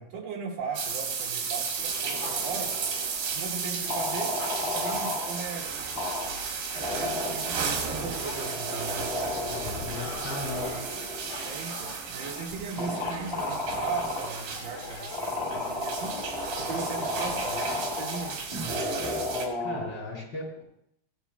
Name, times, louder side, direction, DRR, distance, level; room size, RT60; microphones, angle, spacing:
voice 1, 0.0-2.8 3.3-4.4 4.6-5.7 6.7-9.1 11.4-15.1 15.5-16.1 16.6-18.4, right 5 dB, 60° right, -2 dB, 3.3 m, -37 dB
Bark / Growling, 0.6-7.2 7.6-19.5, left 4 dB, 65° left, 2.4 m, -45 dB
sound 1, 0.8-19.5, right 5 dB, 85° right, 3.8 m, -34 dB
sound 2, 1.8-3.3 3.8-5.5 5.9-6.4 6.7-11.7 12.2-12.3 12.7-14.4 15.1-20.0, left 2 dB, 50° left, 0.4 m, -34 dB
voice 2, 9.5-10.8 19.6-20.6, left 2 dB, 30° left, -6 dB, 4.9 m, -37 dB
15.5 x 11.0 x 2.2 m, 0.74 s
omnidirectional pair, 4.8 m